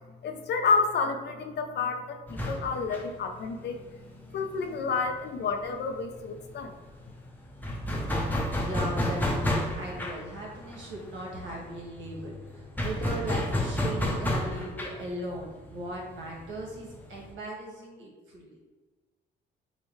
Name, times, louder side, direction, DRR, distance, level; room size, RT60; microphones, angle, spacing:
voice 1, 0.2-3.8 4.3-6.7, left 4 dB, 60° left, 5 dB, 0.5 m, -29 dB
sound 1, 2.3-5.7 5.9-6.1 6.3-17.3, left 1 dB, 10° left, 0.7 m, -32 dB
voice 2, 8.5-18.6, right 1 dB, 75° right, -3 dB, 1.3 m, -38 dB
4.6 x 2.2 x 3.1 m, 1.3 s
cardioid pair, 90°, 20 cm